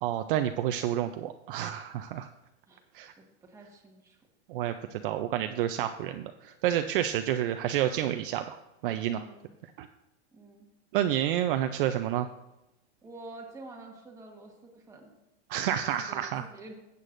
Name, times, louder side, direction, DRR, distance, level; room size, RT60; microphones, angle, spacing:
voice 1, 0.0-2.3 2.9-3.1 4.5-8.6 8.8-9.2 9.8-9.9 10.9-12.3 15.5-16.5, right 11 dB, 50° right, 7 dB, 0.5 m, -29 dB
voice 2, 3.2-4.2 9.1-9.5 10.3-10.7 13.0-15.1 16.0-16.9, right 2 dB, 10° right, 0 dB, 1.3 m, -48 dB
14.0 x 8.2 x 2.5 m, 0.94 s
supercardioid pair, 155°, 35 cm